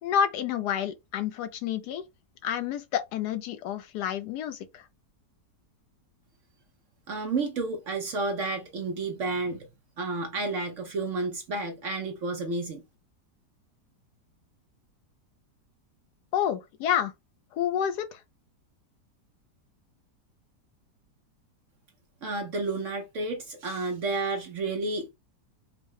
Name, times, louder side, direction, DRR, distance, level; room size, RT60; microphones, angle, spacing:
voice 1, 0.0-2.0 2.4-4.9 16.3-17.1 17.5-18.2, left 9 dB, 75° left, 1.1 m, -29 dB
voice 2, 7.1-9.7 10.0-12.8 22.2-25.1, right 3 dB, 60° right, 0.9 m, -31 dB
4.5 x 2.0 x 3.1 m
omnidirectional pair, 1.8 m